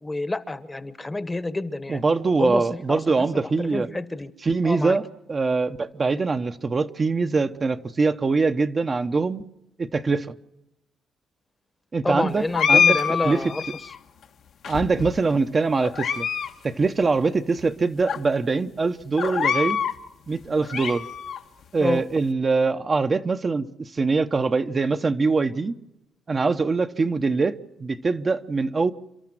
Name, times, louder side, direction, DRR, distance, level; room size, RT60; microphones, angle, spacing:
voice 1, 0.0-2.0 2.4-3.0 3.3-4.3 4.6-5.0 12.0-13.6 21.8-22.0, left 2 dB, 20° left, 1.1 m, -28 dB
voice 2, 1.9-3.9 4.4-5.0 5.3-9.4 9.8-10.3 11.9-13.0 13.2-13.5 14.7-16.3 16.6-19.8 20.3-21.0 21.7-25.7 26.3-28.9, right 4 dB, 35° right, 0.9 m, -23 dB
sound 1, 12.5-14.0 14.6-15.3 15.8-16.5 16.8-16.9 17.6-17.7 18.1-18.2 19.2-20.0 20.4-21.4, left 7 dB, 65° left, 1.3 m, -24 dB
29.0 x 13.0 x 7.7 m
cardioid pair, 90°, 0 cm